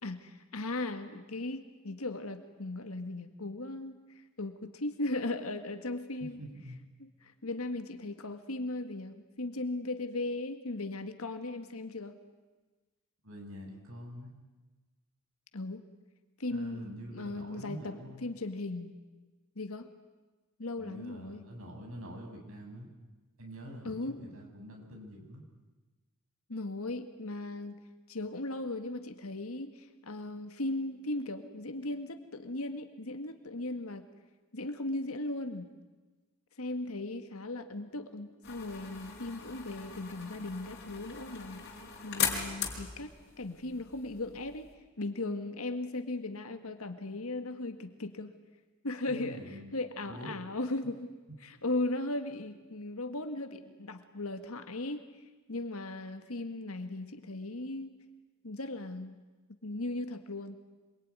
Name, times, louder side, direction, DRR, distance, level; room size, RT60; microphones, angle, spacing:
voice 1, 0.0-6.4 7.0-12.2 15.5-15.8 16.4-18.9 19.5-19.9 20.6-21.4 23.8-24.3 26.5-34.1 34.5-35.7 36.6-41.7 42.0-43.1 43.4-44.7 45.0-48.4 48.8-51.1 51.4-55.2 55.5-57.9 58.4-59.2 59.6-60.6, left 2 dB, 75° left, 8 dB, 1.8 m, -37 dB
voice 2, 6.4-6.8 13.2-14.3 16.5-18.2 20.8-22.9 23.4-25.4 49.1-49.7 50.1-50.3, equal, 70° right, 2 dB, 6.5 m, -45 dB
sound 1, 38.4-44.7, left 7 dB, 50° left, 4.9 m, -39 dB
26.0 x 22.5 x 9.6 m, 1.2 s
head